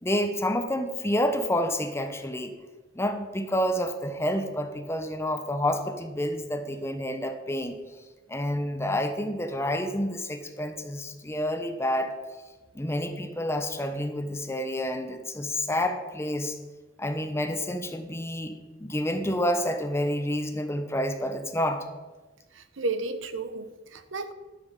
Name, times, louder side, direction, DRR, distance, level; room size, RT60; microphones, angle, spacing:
voice 1, 0.0-2.5 2.9-7.8 8.3-12.1 12.7-16.6 17.0-21.8, left 1 dB, 15° left, 7 dB, 0.9 m, -29 dB
voice 2, 22.5-24.3, right 3 dB, 80° right, 11 dB, 0.9 m, -33 dB
12.5 x 6.0 x 7.5 m, 1.2 s
head